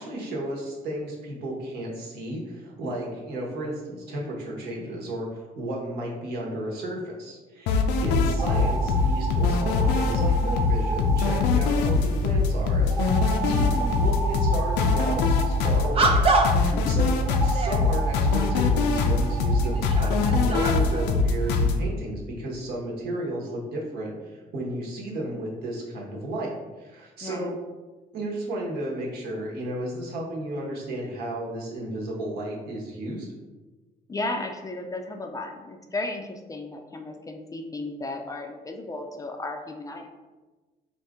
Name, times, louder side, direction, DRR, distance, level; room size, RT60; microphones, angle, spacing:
voice 1, 0.0-16.3 16.5-27.6 28.1-33.3, right 1 dB, 70° right, -2 dB, 1.2 m, -33 dB
sound 1, 7.7-21.8, left 4 dB, 90° left, 0.4 m, -22 dB
sound 2, 8.3-12.2 12.9-16.2 17.2-20.5, right 3 dB, 20° right, 1.1 m, -34 dB
sound 3, 15.0-15.2 15.9-16.7 17.3-17.9 18.8-18.9 19.6-21.2, right 2 dB, 35° right, 0.5 m, -26 dB
voice 2, 16.7-17.0 27.2-27.5 34.1-40.1, left 2 dB, 20° left, 4 dB, 0.4 m, -34 dB
4.2 x 2.5 x 3.5 m, 1.2 s
cardioid pair, 110°, 17 cm